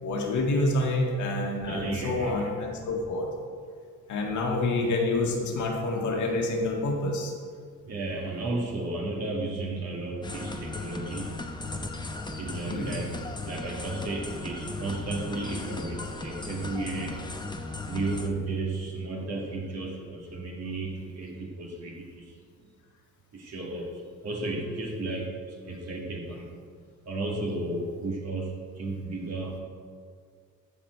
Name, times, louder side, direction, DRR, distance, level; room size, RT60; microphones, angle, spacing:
voice 1, 0.0-3.3 4.1-7.3 12.7-12.9, left 2 dB, 75° left, 0 dB, 1.8 m, -27 dB
voice 2, 1.6-2.5 7.9-11.3 12.4-13.2 13.4-17.2 17.6-22.4 23.3-26.5 27.1-29.6, right 2 dB, 55° right, -2 dB, 2.2 m, -33 dB
sound 1, 10.2-18.3, left 3 dB, 15° left, 0.9 m, -37 dB
14.5 x 5.1 x 4.6 m, 2.1 s
cardioid pair, 90°, 30 cm